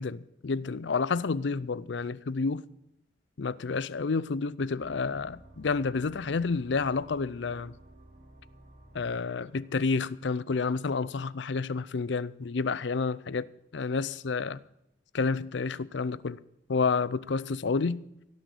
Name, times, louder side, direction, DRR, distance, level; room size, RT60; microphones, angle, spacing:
voice 1, 0.0-2.6 3.4-7.7 8.9-13.5 13.7-14.6 15.1-16.4 16.7-18.0, left 4 dB, 70° left, 0.5 m, -30 dB
sound 1, 4.8-10.1, right 1 dB, 45° right, 3.2 m, -54 dB
17.0 x 6.3 x 8.4 m
head